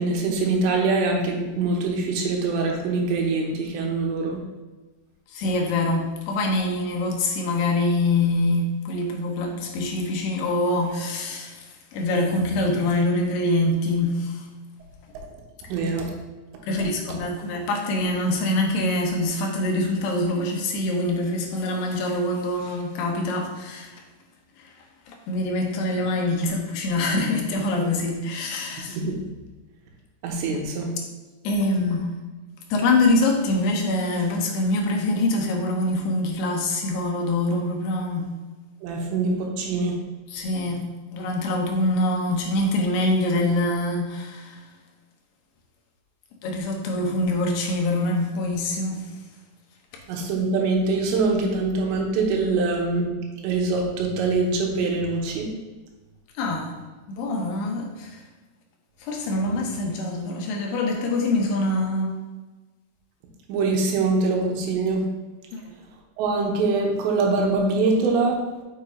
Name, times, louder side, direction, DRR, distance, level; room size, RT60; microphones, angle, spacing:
voice 1, 0.0-4.4 15.7-16.1 28.9-29.2 30.2-30.9 38.8-40.0 50.1-53.1 53.4-55.5 63.5-65.0 66.2-68.4, right 3 dB, 90° right, 1 dB, 3.2 m, -23 dB
voice 2, 5.3-11.6 11.9-14.5 16.7-24.0 24.6-24.7 25.1-29.0 31.4-32.1 32.7-38.3 40.3-40.9 41.1-44.6 46.4-49.1 56.4-56.8 57.2-58.2 59.0-62.1 65.5-65.7, left 2 dB, 75° left, 1 dB, 2.9 m, -24 dB
6.9 x 6.4 x 2.8 m, 1.2 s
omnidirectional pair, 5.0 m